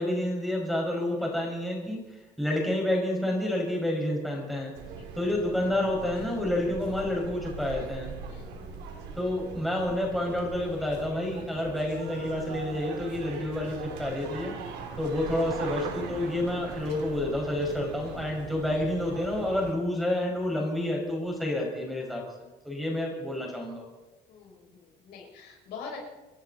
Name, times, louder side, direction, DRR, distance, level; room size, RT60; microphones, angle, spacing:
voice 1, 0.0-2.0 2.4-4.7 5.2-8.1 9.2-14.6 15.0-22.2 22.6-23.9, left 1 dB, ahead, -2 dB, 5.6 m, -29 dB
sound 1, 4.7-19.7, right 5 dB, 85° right, 2.9 m, -41 dB
voice 2, 4.9-5.3 8.3-8.8 23.1-23.2 24.3-26.0, left 5 dB, 75° left, -1 dB, 6.1 m, -45 dB
29.0 x 11.5 x 4.1 m, 1.1 s
cardioid pair, 110°, 17 cm